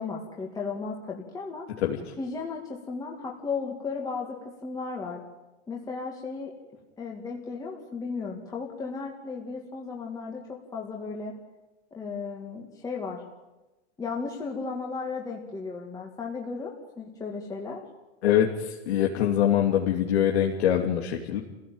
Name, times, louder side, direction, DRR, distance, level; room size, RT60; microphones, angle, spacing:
voice 1, 0.0-1.6 2.2-5.2 5.7-6.5 7.0-11.4 11.9-13.2 14.0-17.8, left 4 dB, 10° left, -1 dB, 2.3 m, -35 dB
voice 2, 18.2-21.4, left 10 dB, 60° left, 0 dB, 3.1 m, -24 dB
29.0 x 16.5 x 9.1 m, 1.1 s
supercardioid pair, 160°, 36 cm